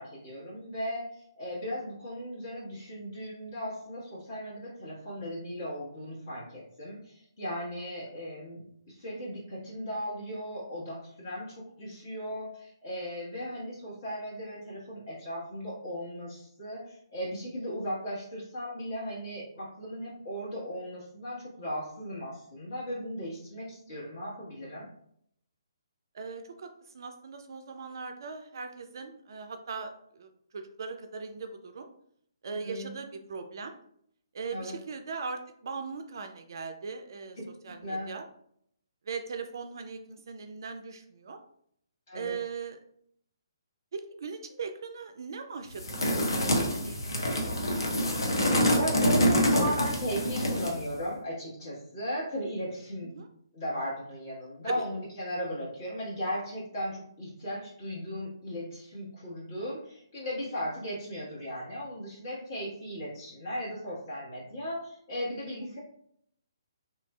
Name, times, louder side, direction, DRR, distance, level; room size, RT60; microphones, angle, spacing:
voice 1, 0.0-24.9 32.4-32.9 34.5-34.7 37.8-38.1 42.1-42.3 48.8-53.1 53.5-65.8, equal, 50° left, -7 dB, 1.1 m, -36 dB
voice 2, 26.1-26.7 26.9-31.9 32.4-33.7 34.3-37.4 37.6-38.3 39.1-41.4 42.1-42.8 43.9-47.9 53.0-53.3 54.6-54.8 65.6-65.8, right 5 dB, 55° right, 6 dB, 0.3 m, -40 dB
sound 1, 45.8-50.8, equal, 75° left, 0.7 m, -26 dB
3.0 x 2.5 x 2.3 m, 0.68 s
figure-of-eight pair, 135°, 2 cm